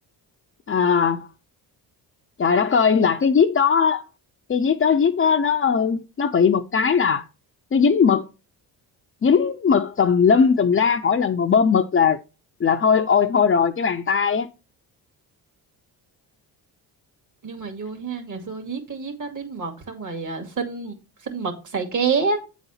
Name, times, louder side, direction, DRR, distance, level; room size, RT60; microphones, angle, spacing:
voice 1, 0.7-1.3 2.4-4.0 4.5-7.2 7.7-8.3 9.2-12.2 12.6-14.5, left 6 dB, 30° left, 0.6 m, -19 dB
voice 2, 17.4-21.0 21.2-22.4, right 5 dB, 45° right, 2.3 m, -28 dB
8.8 x 4.1 x 5.6 m
cardioid pair, 95°, 41 cm